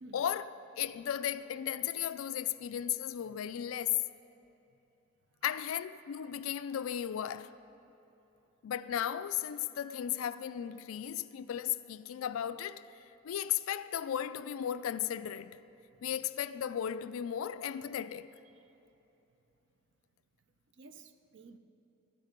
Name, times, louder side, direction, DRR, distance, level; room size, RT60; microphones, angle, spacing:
voice 1, 0.1-4.0 5.4-7.5 8.6-12.9 13.2-15.6 16.0-18.3, left 10 dB, 85° left, 0.3 m, -35 dB
voice 2, 20.8-21.6, right 3 dB, 55° right, 0.5 m, -53 dB
12.5 x 9.3 x 5.2 m
head